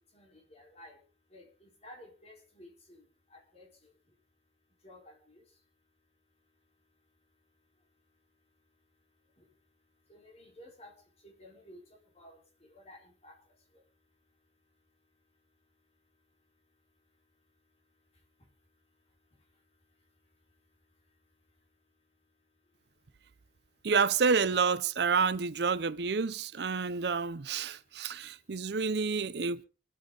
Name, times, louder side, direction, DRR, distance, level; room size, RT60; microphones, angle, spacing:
voice 1, 0.1-1.0 1.3-3.7 4.8-5.4 10.1-11.0 11.2-11.8 12.2-12.4 12.7-13.4, left 1 dB, 35° left, 4.3 m, -54 dB
voice 2, 23.8-29.7, right 5 dB, 65° right, 0.6 m, -29 dB
26.0 x 8.7 x 3.9 m
head